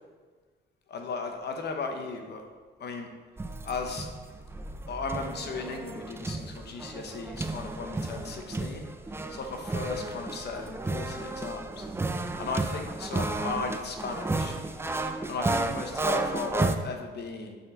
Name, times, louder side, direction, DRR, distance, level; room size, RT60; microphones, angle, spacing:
voice 1, 0.9-2.4 2.8-3.1 3.6-4.1 4.9-8.8 9.3-11.9 12.4-14.5 15.2-17.6, left 4 dB, 55° left, 4 dB, 1.0 m, -36 dB
sound 1, 3.4-16.8, right 2 dB, 10° right, 0.4 m, -33 dB
6.7 x 4.4 x 3.8 m, 1.5 s
cardioid pair, 90°, 20 cm